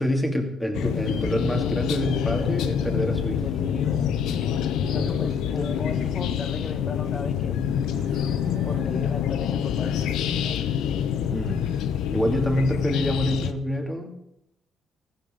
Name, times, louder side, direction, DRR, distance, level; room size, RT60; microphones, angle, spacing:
voice 1, 0.0-3.4 4.8-5.2 11.3-11.6 12.1-14.2, equal, 10° left, 3 dB, 3.0 m, -26 dB
sound 1, 0.7-13.5, left 9 dB, 85° left, 0.8 m, -26 dB
sound 2, 1.4-8.9, right 7 dB, 75° right, 1.3 m, -44 dB
voice 2, 3.3-4.6 4.9-7.6 8.6-10.6, left 4 dB, 40° left, 9 dB, 1.5 m, -36 dB
15.5 x 14.0 x 4.0 m, 0.81 s
cardioid pair, 90°, 0 cm